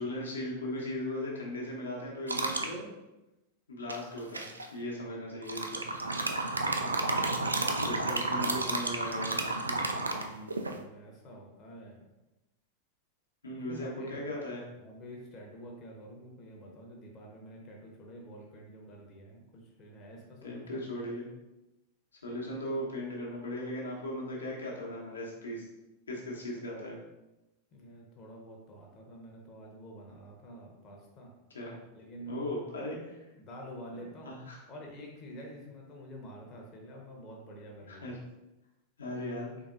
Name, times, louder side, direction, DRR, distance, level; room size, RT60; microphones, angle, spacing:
voice 1, 0.0-2.9 3.7-5.8 7.8-9.8 10.1-10.6 13.4-14.7 20.4-21.2 22.2-25.7 26.1-27.0 31.5-31.8 32.3-33.2 33.9-34.6 37.9-38.2 39.0-39.5, left 1 dB, 70° left, -3 dB, 1.0 m, -38 dB
sound 1, 2.3-2.7 3.9-4.6 5.4-10.8, right 2 dB, 80° right, 0.3 m, -31 dB
voice 2, 10.5-12.0 13.4-14.3 14.8-20.8 27.7-31.3 31.9-32.5 33.4-34.3 34.7-38.2, equal, 30° left, -1 dB, 0.8 m, -48 dB
3.8 x 3.5 x 2.4 m, 0.98 s
figure-of-eight pair, 90°, 0 cm